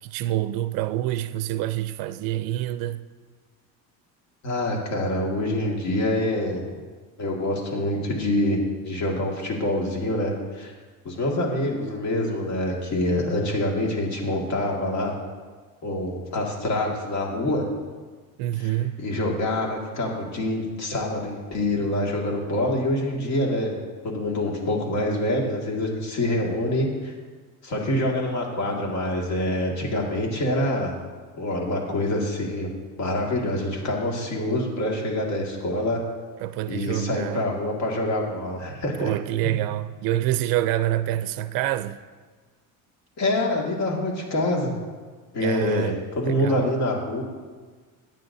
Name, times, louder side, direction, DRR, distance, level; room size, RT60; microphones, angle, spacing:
voice 1, 0.0-3.0 18.4-19.0 36.4-37.5 39.0-42.0 45.4-46.0 46.2-46.7, right 14 dB, 80° right, 0.5 m, -27 dB
voice 2, 4.4-6.6 7.2-10.7 11.1-15.1 15.8-17.6 18.6-23.7 24.0-27.1 27.6-30.9 31.4-32.7 33.0-36.0 36.7-39.1 43.2-44.7 45.3-47.2, left 1 dB, 50° left, 2.0 m, -26 dB
16.5 x 9.0 x 2.7 m
cardioid pair, 175°, 34 cm